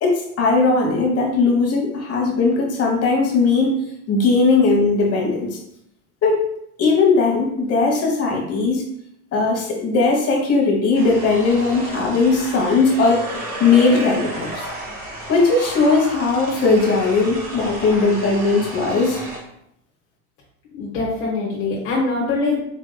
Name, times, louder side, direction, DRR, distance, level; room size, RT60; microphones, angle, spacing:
voice 1, 0.0-5.6 6.2-6.4 6.8-8.8 9.3-13.2 13.6-14.7 15.3-19.2, left 3 dB, 35° left, 0 dB, 1.2 m, -18 dB
sound 1, 10.9-19.4, right 1 dB, 20° right, 1.3 m, -32 dB
voice 2, 20.7-22.6, left 3 dB, 60° left, -5 dB, 1.4 m, -23 dB
4.5 x 3.5 x 2.2 m, 0.75 s
hypercardioid pair, 100°, 44 cm